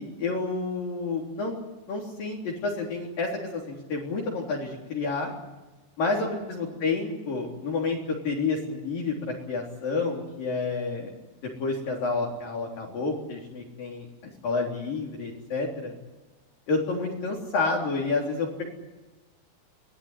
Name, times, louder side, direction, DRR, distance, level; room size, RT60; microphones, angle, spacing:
voice 1, 0.0-1.5 1.9-5.3 6.0-11.1 11.6-15.9 16.7-18.6, left 3 dB, 55° left, -2 dB, 5.3 m, -29 dB
24.5 x 19.0 x 10.0 m, 1.1 s
omnidirectional pair, 4.7 m